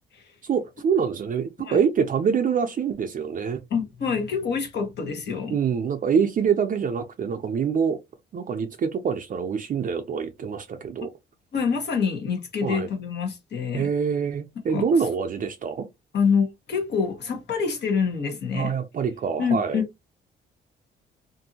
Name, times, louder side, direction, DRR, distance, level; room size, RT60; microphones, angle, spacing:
voice 1, 0.4-3.6 5.5-8.0 8.3-11.1 12.6-12.9 13.7-15.8 18.5-19.8, right 6 dB, 45° right, 0.4 m, -25 dB
voice 2, 3.7-5.5 11.5-13.9 14.7-14.9 16.1-18.7 19.4-19.8, left 6 dB, 60° left, 1.2 m, -26 dB
2.6 x 2.6 x 2.7 m
cardioid pair, 90°, 20 cm